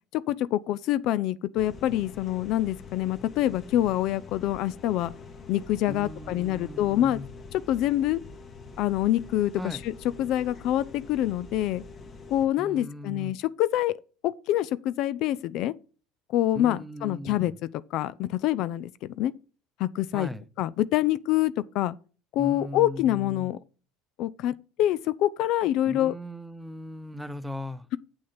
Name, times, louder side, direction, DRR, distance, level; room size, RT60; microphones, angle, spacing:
voice 1, 0.1-5.1 5.5-7.2 7.5-8.2 8.8-9.9 10.2-11.8 12.3-14.0 14.2-15.7 16.3-17.5 17.9-18.9 19.2-19.3 19.8-20.3 20.6-22.0 22.3-23.6 24.2-26.1, left 13 dB, 60° left, 0.4 m, -26 dB
sound 1, 1.6-12.5, left 4 dB, 40° left, 1.9 m, -45 dB
voice 2, 5.9-7.3 9.6-9.8 12.6-13.3 16.5-17.5 20.1-20.4 22.4-23.5 25.9-27.9, left 1 dB, 5° right, 0.8 m, -38 dB
7.2 x 6.3 x 5.7 m
hypercardioid pair, 80°, 0 cm